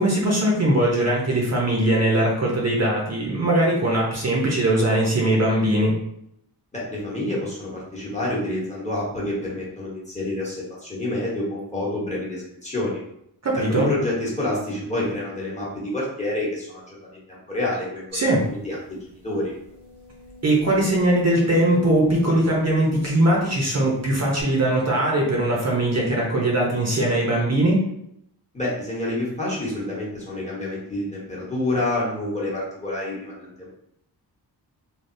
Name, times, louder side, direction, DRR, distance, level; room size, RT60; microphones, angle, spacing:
voice 1, 0.0-5.9 13.4-13.9 18.1-18.4 20.4-27.8, right 1 dB, 40° right, -2 dB, 0.7 m, -20 dB
voice 2, 6.7-13.0 13.5-18.2 18.5-19.5 28.5-33.7, left 1 dB, 15° left, -6 dB, 0.9 m, -28 dB
sound 1, 18.4-18.5 18.9-19.0 19.5-23.7 24.4-24.5, left 4 dB, 85° right, 1.2 m, -39 dB
3.4 x 2.3 x 2.6 m, 0.76 s
wide cardioid pair, 140°, 40 cm